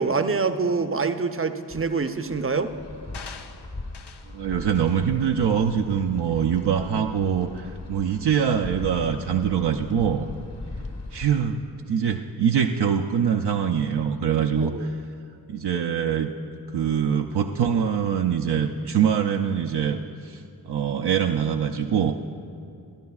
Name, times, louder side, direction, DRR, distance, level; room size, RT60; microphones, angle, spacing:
voice 1, 0.0-2.7 14.6-14.9, right 4 dB, 35° right, 9 dB, 0.7 m, -25 dB
Wind, 1.7-11.5, left 2 dB, 35° left, 1.1 m, -39 dB
sound 1, 3.1-4.4 4.8-5.0 5.6-5.7, left 5 dB, 75° left, 0.7 m, -43 dB
voice 2, 4.3-10.3 11.1-15.0 15.5-16.3 16.7-22.1, right 7 dB, 75° right, 3 dB, 0.6 m, -24 dB
22.5 x 11.5 x 2.4 m, 2.4 s
cardioid pair, 50°, 40 cm